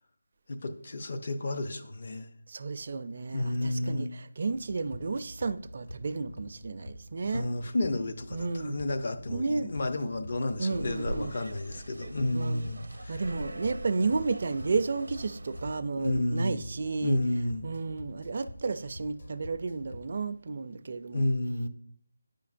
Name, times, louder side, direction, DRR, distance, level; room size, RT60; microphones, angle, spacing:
voice 1, 0.5-2.3 3.3-4.1 7.3-13.2 16.0-16.6 17.0-17.6 21.1-21.7, left 1 dB, 45° left, 0.6 m, -31 dB
voice 2, 2.5-7.5 8.3-8.8 9.3-9.7 10.6-11.4 12.3-12.6 13.1-17.2 17.6-21.3, right 4 dB, 45° right, 0.4 m, -32 dB
sound 1, 4.5-20.2, equal, 70° left, 2.3 m, -46 dB
sound 2, 10.7-15.8, right 1 dB, 85° right, 0.6 m, -42 dB
9.2 x 5.1 x 2.5 m
figure-of-eight pair, 170°, 0 cm